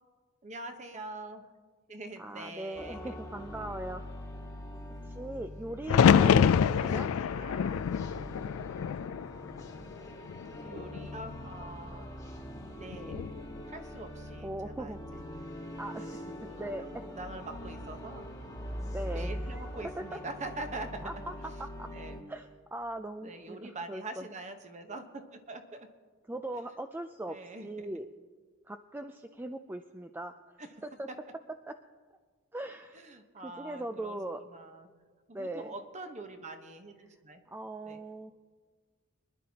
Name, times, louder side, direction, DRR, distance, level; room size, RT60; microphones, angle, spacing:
voice 1, 0.4-1.5 1.9-3.2 3.6-3.7 6.3-6.8 7.0-7.8 10.6-12.1 12.8-13.2 13.7-15.2 16.0-18.3 19.1-21.1 21.4-21.5 21.9-22.2 23.2-25.9 26.6-26.7 27.3-27.9 30.6-30.7 32.9-34.2 34.5-34.9 35.3-37.4 37.8-38.0, right 2 dB, 35° right, 6 dB, 1.1 m, -44 dB
voice 2, 2.2-4.0 5.1-7.1 12.9-13.2 14.4-15.0 15.8-16.0 16.6-16.8 18.9-19.6 20.0-20.2 21.0-21.3 21.8-21.9 22.3-24.3 26.3-27.4 27.6-28.1 28.7-30.3 30.8-31.1 31.7-31.8 32.5-33.0 33.4-34.4 35.3-35.7 37.5-38.3, right 1 dB, 10° right, 7 dB, 0.3 m, -40 dB
sound 1, 2.7-22.2, equal, 15° left, 1.4 m, -43 dB
sound 2, 5.9-9.9 10.3-11.1 12.9-13.4, left 7 dB, 70° left, 0.3 m, -26 dB
24.5 x 11.0 x 2.9 m, 1.5 s
head